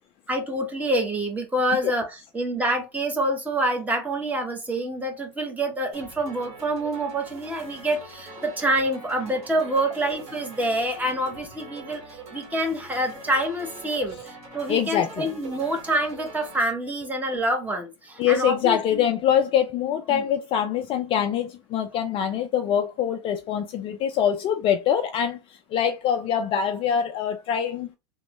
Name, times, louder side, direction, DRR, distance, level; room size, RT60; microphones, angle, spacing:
voice 1, 0.3-19.1 20.1-20.2, right 1 dB, 10° right, 0.9 m, -27 dB
sound 1, 5.9-16.6, right 3 dB, 45° right, 1.5 m, -43 dB
voice 2, 14.7-15.3 18.2-25.4 25.7-28.0, left 9 dB, 35° left, 0.4 m, -24 dB
3.0 x 2.1 x 2.9 m
hypercardioid pair, 115°, 16 cm